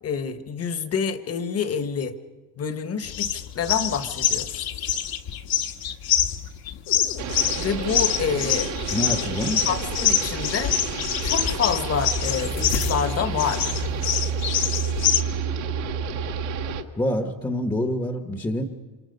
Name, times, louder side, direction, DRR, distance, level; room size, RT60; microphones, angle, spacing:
voice 1, 0.0-2.1 2.6-4.7 7.5-8.7 9.7-10.7 11.2-13.7, left 7 dB, 30° left, 11 dB, 1.3 m, -27 dB
sound 1, 3.0-15.2, left 10 dB, 50° left, 1.4 m, -25 dB
sound 2, 6.9-16.9, left 9 dB, 85° left, 1.4 m, -38 dB
sound 3, 7.2-16.8, right 9 dB, 75° right, 1.8 m, -30 dB
voice 2, 8.9-9.7 17.0-18.6, left 1 dB, 10° left, 6 dB, 1.0 m, -26 dB
28.0 x 26.0 x 5.4 m, 1.3 s
cardioid pair, 150°, 46 cm